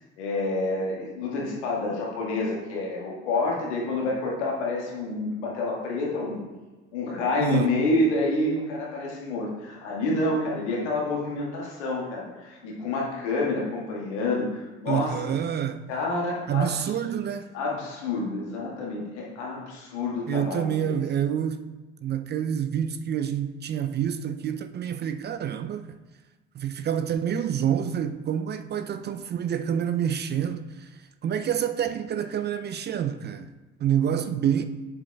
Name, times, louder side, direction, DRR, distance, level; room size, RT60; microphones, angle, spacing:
voice 1, 0.2-6.4 6.9-15.1 15.9-16.9 17.5-20.9, left 2 dB, 75° left, 1.7 m, -28 dB
voice 2, 7.4-7.7 14.9-15.8 16.5-17.5 20.3-21.6 22.0-26.0 26.5-30.9 31.2-33.5 33.8-34.6, right 9 dB, 30° right, 0.4 m, -27 dB
7.7 x 7.1 x 2.3 m
hypercardioid pair, 55°, 34 cm